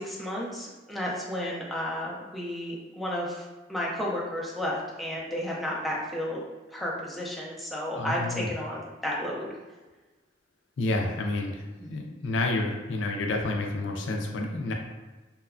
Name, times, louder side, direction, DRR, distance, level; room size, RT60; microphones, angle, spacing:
voice 1, 0.0-3.4 3.7-6.4 6.7-9.5 11.8-11.9, left 1 dB, ahead, -5 dB, 0.4 m, -32 dB
voice 2, 7.9-8.5 10.8-14.7, left 2 dB, 75° left, 2 dB, 0.4 m, -29 dB
2.9 x 2.2 x 2.4 m, 1.2 s
head